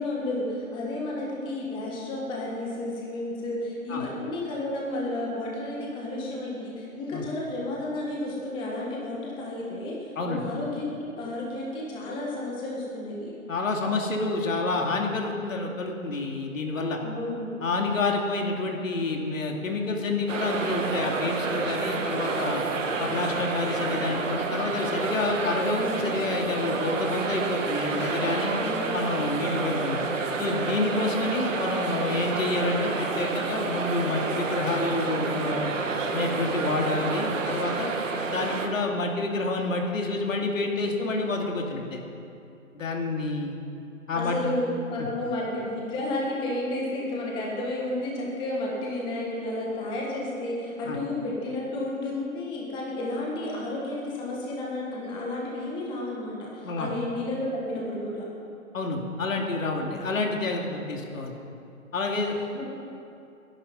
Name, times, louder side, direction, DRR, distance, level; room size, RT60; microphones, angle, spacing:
voice 1, 0.0-13.3 17.0-17.6 28.6-29.1 44.1-58.3 62.5-62.7, left 1 dB, 10° left, -3 dB, 1.8 m, -32 dB
voice 2, 13.5-17.0 17.6-22.6 23.0-28.5 28.9-30.0 30.4-35.7 36.1-37.9 38.3-42.0 42.7-43.6 44.1-44.4 45.0-45.1 50.8-51.0 56.6-56.9 58.7-61.4 61.9-62.4, left 3 dB, 70° left, 1 dB, 2.6 m, -28 dB
sound 1, 20.3-38.7, right 4 dB, 65° right, 2.1 m, -29 dB
20.0 x 11.0 x 5.5 m, 2.6 s
hypercardioid pair, 160°, 41 cm